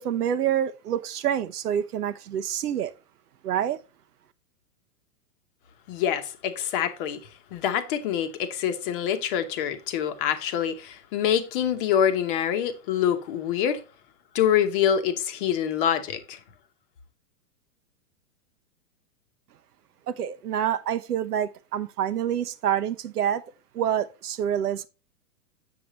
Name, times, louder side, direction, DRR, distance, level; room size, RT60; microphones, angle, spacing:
voice 1, 0.0-2.9 3.4-3.8 20.1-23.4 23.7-24.9, right 9 dB, 85° right, 0.8 m, -27 dB
voice 2, 5.9-13.8 14.3-16.4, left 9 dB, 35° left, 0.9 m, -26 dB
7.1 x 6.7 x 3.0 m
hypercardioid pair, 145°, 44 cm